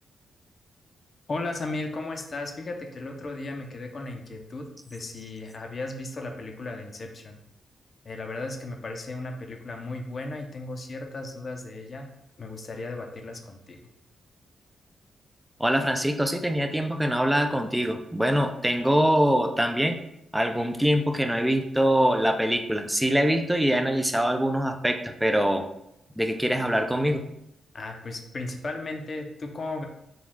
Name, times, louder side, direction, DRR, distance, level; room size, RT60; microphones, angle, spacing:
voice 1, 1.3-7.4 8.0-12.1 12.4-13.8 27.7-29.9, left 2 dB, 45° left, 3 dB, 0.6 m, -35 dB
voice 2, 15.6-20.0 20.3-25.6 26.2-27.2, equal, 5° right, 5 dB, 0.5 m, -24 dB
5.1 x 2.3 x 3.5 m, 0.81 s
cardioid pair, 100°, 0 cm